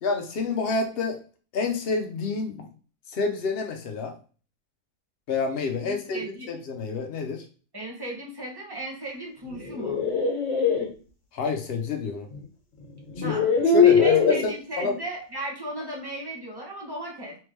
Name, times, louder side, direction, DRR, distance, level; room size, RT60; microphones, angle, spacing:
voice 1, 0.0-1.2 1.5-2.7 3.1-4.1 5.3-7.4 11.3-12.3 13.2-13.4 13.7-14.9, left 4 dB, 90° left, 3 dB, 0.5 m, -28 dB
voice 2, 5.8-6.5 7.7-10.1 13.2-13.5 13.8-17.4, right 1 dB, 20° right, -2 dB, 0.7 m, -36 dB
sound 1, 9.5-10.9 12.3-12.4 13.1-14.5, left 6 dB, 50° left, 1.4 m, -21 dB
3.3 x 3.2 x 3.3 m, 0.38 s
omnidirectional pair, 1.8 m